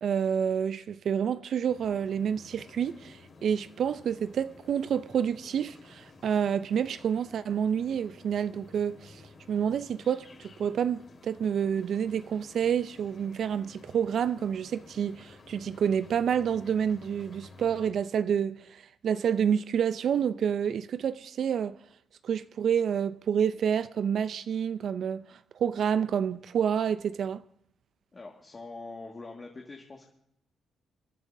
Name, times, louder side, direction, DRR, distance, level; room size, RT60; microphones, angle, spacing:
voice 1, 0.0-9.2 9.5-21.8 22.2-27.4, right 8 dB, 65° right, 0.4 m, -28 dB
sound 1, 1.7-17.9, left 3 dB, 50° left, 3.9 m, -53 dB
voice 2, 28.1-30.1, left 3 dB, 35° left, 1.8 m, -44 dB
28.5 x 11.0 x 2.7 m
supercardioid pair, 70°, 0 cm